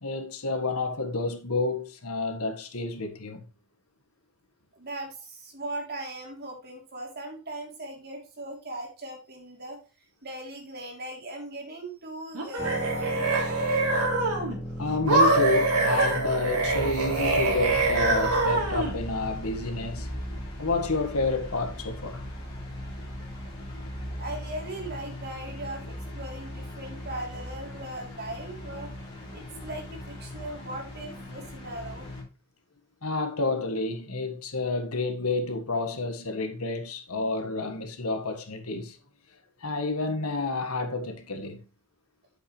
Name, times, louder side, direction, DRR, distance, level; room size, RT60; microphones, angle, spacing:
voice 1, 0.0-3.4 14.8-20.1 20.6-22.2 33.0-39.0 39.6-41.6, left 3 dB, 75° left, 1.6 m, -29 dB
voice 2, 4.8-9.8 10.2-13.6 24.2-28.9 29.3-32.1, right 1 dB, 45° right, 3.3 m, -39 dB
sound 1, 12.3-14.6 15.1-19.0, right 2 dB, 85° right, 3.3 m, -24 dB
sound 2, 12.6-24.2, equal, 10° left, 2.6 m, -39 dB
sound 3, 16.6-32.2, left 1 dB, 25° left, 5.6 m, -39 dB
9.0 x 7.9 x 3.2 m
head